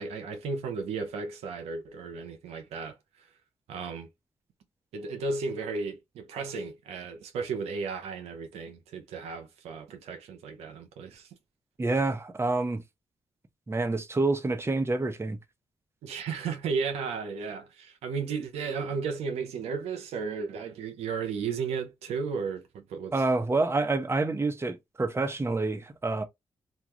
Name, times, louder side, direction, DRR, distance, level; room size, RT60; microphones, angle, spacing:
voice 1, 0.0-3.0 3.7-4.1 4.9-11.3 16.0-23.1, right 5 dB, 85° right, 0.6 m, -34 dB
voice 2, 11.8-12.8 13.7-15.4 23.1-26.2, right 3 dB, 25° right, 0.7 m, -27 dB
2.4 x 2.2 x 2.9 m
supercardioid pair, 45°, 11 cm